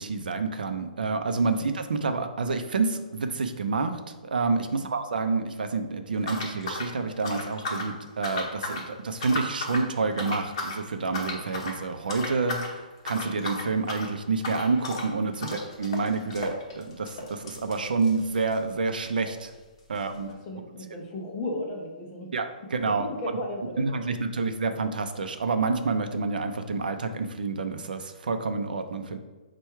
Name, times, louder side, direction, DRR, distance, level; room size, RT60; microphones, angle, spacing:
voice 1, 0.0-19.5 19.9-20.3 22.3-23.1 23.8-29.2, right 4 dB, 80° right, 7 dB, 0.5 m, -28 dB
sound 1, 6.2-7.9 8.2-8.9 9.2-9.9 10.2-10.8 11.1-11.8 12.1-12.7 13.0-18.7 19.0-19.1 19.3-19.4 20.0-20.1, left 2 dB, 35° left, 0.8 m, -34 dB
voice 2, 19.9-22.3 22.9-24.2, left 1 dB, 15° left, -1 dB, 0.4 m, -35 dB
4.5 x 2.2 x 4.5 m, 1.3 s
hypercardioid pair, 180°, 5 cm